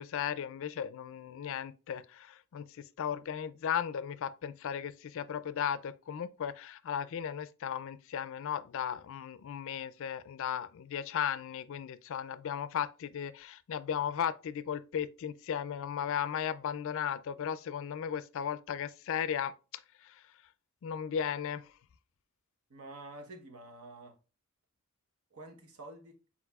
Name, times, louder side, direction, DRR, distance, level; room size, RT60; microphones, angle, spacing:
voice 1, 0.0-19.5 20.0-20.2 20.8-21.7, left 8 dB, 65° left, 0.3 m, -36 dB
voice 2, 22.7-24.2 25.3-26.2, right 2 dB, 80° right, 1.0 m, -48 dB
4.6 x 4.2 x 2.2 m
head